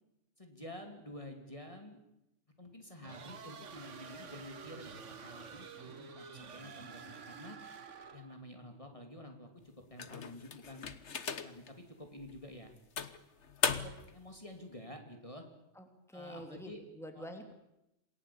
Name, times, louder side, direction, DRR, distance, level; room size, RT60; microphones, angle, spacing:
voice 1, 0.4-2.0 2.6-4.9 5.2-7.6 8.1-10.9 11.3-12.7 13.7-15.4 16.1-16.8 17.1-17.3, left 1 dB, 25° left, 4 dB, 3.0 m, -50 dB
sound 1, 3.0-8.4, right 6 dB, 80° right, 1.7 m, -49 dB
sound 2, 10.0-11.7 12.2-12.4 13.0-14.2, left 6 dB, 70° left, 1.6 m, -37 dB
voice 2, 15.8-17.5, equal, ahead, 5 dB, 2.9 m, -47 dB
28.0 x 18.5 x 8.7 m, 0.87 s
omnidirectional pair, 1.2 m